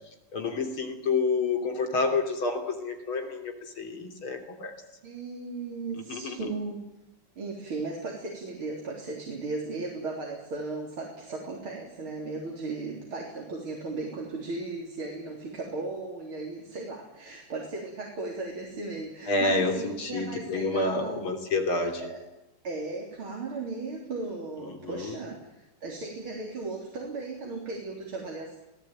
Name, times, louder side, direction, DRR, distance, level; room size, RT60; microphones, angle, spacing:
voice 1, 0.3-4.7 6.1-6.4 19.3-22.1 24.7-25.1, left 3 dB, 70° left, 5 dB, 4.1 m, -29 dB
voice 2, 5.0-6.8 7.4-21.2 21.8-22.2 22.6-28.6, right 3 dB, 70° right, -1 dB, 4.6 m, -36 dB
27.0 x 17.5 x 9.2 m, 0.95 s
omnidirectional pair, 2.4 m